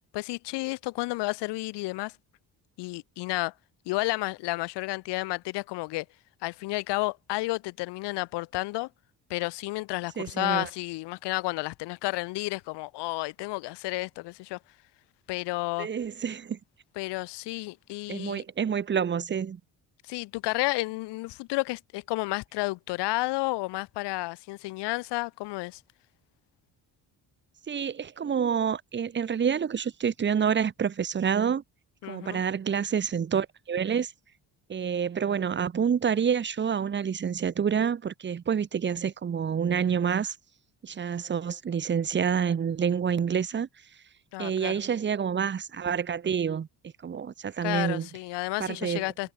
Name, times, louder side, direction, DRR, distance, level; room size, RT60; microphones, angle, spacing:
voice 1, 0.1-2.1 2.8-3.5 3.9-6.1 6.4-8.9 9.3-14.6 15.3-15.9 17.0-18.4 20.0-25.8 32.0-32.4 44.3-44.8 47.6-49.3, left 21 dB, 80° left, 0.6 m, -31 dB
voice 2, 10.2-10.7 15.8-16.6 18.1-19.6 27.7-31.6 32.0-34.1 34.7-40.4 40.8-43.7 44.4-46.7 47.0-48.1 48.6-49.0, right 7 dB, 30° right, 0.7 m, -28 dB
cardioid pair, 100°, 40 cm